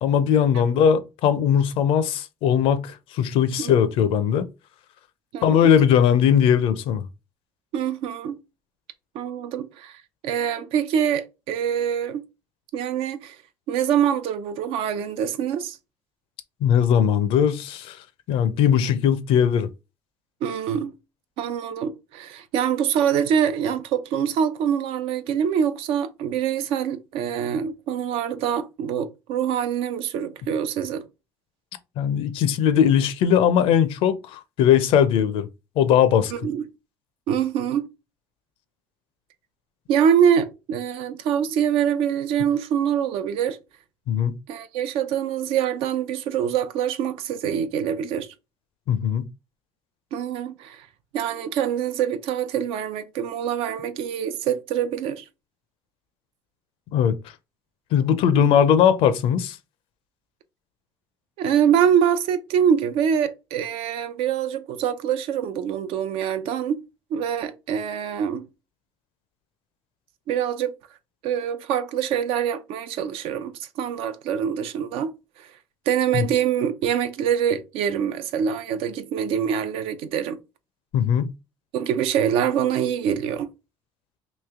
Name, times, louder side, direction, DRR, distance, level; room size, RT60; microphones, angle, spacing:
voice 1, 0.0-4.5 5.4-7.1 16.6-18.0 18.3-19.7 32.0-35.5 35.8-36.3 44.1-44.4 48.9-49.3 56.9-57.1 57.9-59.6 76.1-76.3 80.9-81.3, left 8 dB, 75° left, 0.6 m, -19 dB
voice 2, 7.7-8.4 9.1-12.3 12.7-13.4 13.7-15.8 20.4-20.9 21.4-31.0 36.3-36.7 37.3-37.9 39.9-43.6 44.5-48.3 50.1-50.9 51.1-55.2 58.3-58.5 61.4-66.8 67.1-68.5 70.3-70.7 71.2-75.1 75.4-75.5 75.9-80.4 81.7-83.5, right 8 dB, 80° right, 0.5 m, -24 dB
3.2 x 2.7 x 3.6 m
cardioid pair, 115°, 9 cm